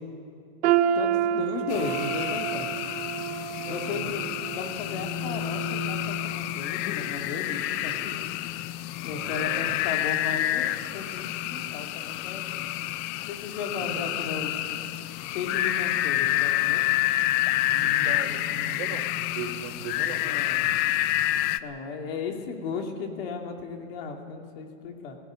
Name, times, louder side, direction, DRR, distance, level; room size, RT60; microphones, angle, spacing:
sound 1, 0.6-6.6 7.0-7.2 7.9-8.0, right 9 dB, 85° right, 1.2 m, -29 dB
voice 1, 0.9-2.7 3.7-8.2 9.0-12.7 13.3-14.6 15.3-16.9 20.2-20.7 21.6-25.2, left 5 dB, 65° left, 3 dB, 2.8 m, -35 dB
sound 2, 1.7-21.6, left 15 dB, 30° left, 0.4 m, -28 dB
voice 2, 3.6-4.3 9.1-9.7 13.8-13.9 17.7-19.1 19.3-20.2, right 6 dB, 70° right, 1 dB, 3.1 m, -38 dB
17.0 x 16.0 x 9.7 m, 2.4 s
supercardioid pair, 155°, 32 cm